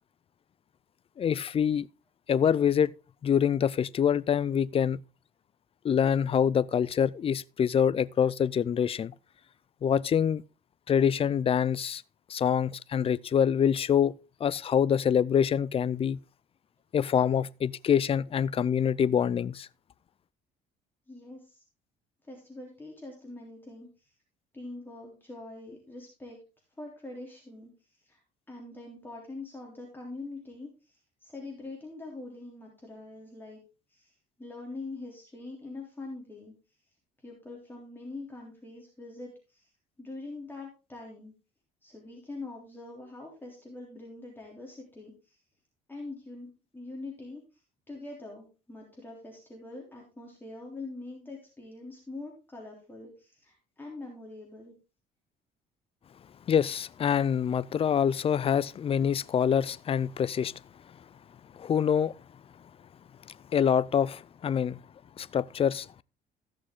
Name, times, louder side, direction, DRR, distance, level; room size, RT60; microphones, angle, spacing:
voice 1, 1.2-1.9 2.3-2.9 3.2-5.0 5.8-9.1 9.8-10.4 10.9-12.0 12.3-14.1 14.4-16.2 16.9-19.7 56.5-60.5 61.5-62.1 63.5-64.8 65.2-66.0, left 8 dB, 35° left, 0.4 m, -25 dB
voice 2, 21.1-21.6 22.2-24.1 24.5-26.4 26.8-28.2 28.5-33.6 33.9-36.5 37.2-39.7 40.0-41.3 41.8-45.4 45.9-54.7, left 2 dB, 10° left, 3.4 m, -44 dB
15.0 x 6.4 x 3.7 m
cardioid pair, 110°, 17 cm